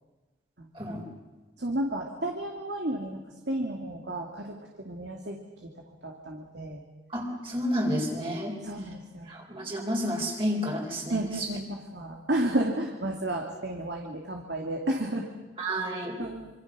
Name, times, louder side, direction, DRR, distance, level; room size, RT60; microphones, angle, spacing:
voice 1, 1.6-3.2 3.5-5.4 6.0-6.8 8.6-9.3 11.1-15.3 16.2-16.5, right 1 dB, 65° right, 1 dB, 2.5 m, -32 dB
voice 2, 7.1-8.6 9.3-11.5 15.6-16.2, equal, 30° right, -1 dB, 4.0 m, -30 dB
26.5 x 25.5 x 6.3 m, 1.2 s
head